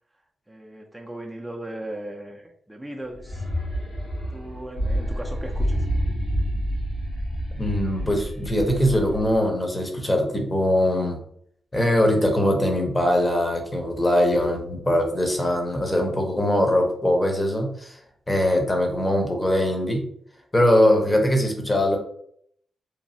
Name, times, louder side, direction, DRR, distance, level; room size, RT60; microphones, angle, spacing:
voice 1, 0.5-3.5 4.3-6.1, right 1 dB, 5° right, 0 dB, 0.5 m, -37 dB
sound 1, 3.1-9.5, equal, 80° left, 1.5 m, -28 dB
voice 2, 7.6-11.2 11.7-18.0 18.3-20.1 20.5-22.0, left 1 dB, 20° left, 2 dB, 0.9 m, -21 dB
3.0 x 2.3 x 2.7 m, 0.67 s
cardioid pair, 55°, 0 cm